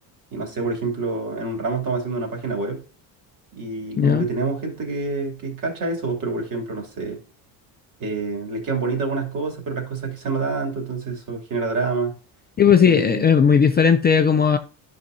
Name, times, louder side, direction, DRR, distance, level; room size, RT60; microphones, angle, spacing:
voice 1, 0.3-2.8 3.5-7.2 8.0-12.1 12.8-13.3, right 3 dB, 50° right, 3.0 m, -27 dB
voice 2, 12.6-14.6, left 7 dB, 25° left, 0.4 m, -16 dB
11.5 x 5.8 x 2.7 m
cardioid pair, 130°, 42 cm